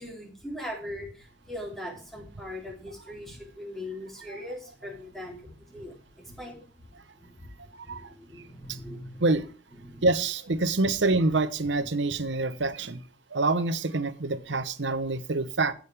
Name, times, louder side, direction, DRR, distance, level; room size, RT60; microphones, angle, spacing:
voice 1, 0.0-9.2 9.8-10.1, left 1 dB, ahead, -1 dB, 3.4 m, -41 dB
voice 2, 7.7-8.1 8.7-8.8 9.2-9.5 10.0-13.0 13.3-15.7, right 3 dB, 90° right, 13 dB, 1.0 m, -26 dB
15.5 x 6.4 x 3.5 m, 0.37 s
head